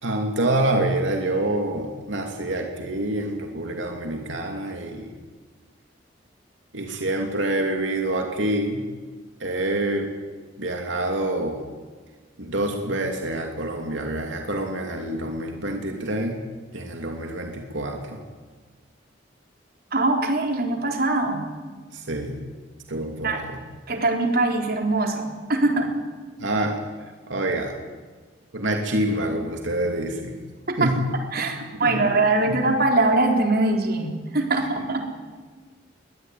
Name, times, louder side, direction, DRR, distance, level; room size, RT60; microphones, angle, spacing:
voice 1, 0.0-5.1 6.7-8.8 9.4-10.1 10.6-11.6 12.4-16.4 16.7-18.2 21.9-22.4 22.9-23.6 26.4-26.8 27.3-27.7 28.5-30.4 30.8-31.0 31.4-31.5 31.8-32.0 32.5-32.6, right 1 dB, 90° right, 3 dB, 2.8 m, -26 dB
voice 2, 19.9-21.4 23.0-23.4 23.9-25.9 30.8-30.9 31.3-35.0, right 2 dB, 55° right, 3 dB, 4.0 m, -22 dB
22.0 x 19.5 x 9.5 m, 1.5 s
head